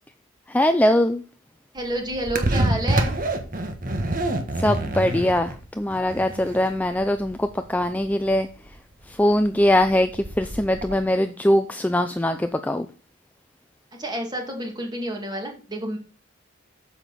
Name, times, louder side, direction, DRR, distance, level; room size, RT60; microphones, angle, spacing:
voice 1, 0.5-1.2 4.6-8.5 9.2-12.9, left 1 dB, 10° left, 8 dB, 0.4 m, -21 dB
voice 2, 1.7-3.1 14.0-16.0, right 1 dB, 20° right, 2 dB, 2.1 m, -29 dB
sound 1, 1.8-11.0, right 1 dB, 45° right, 1.4 m, -27 dB
8.9 x 7.3 x 4.1 m, 0.36 s
head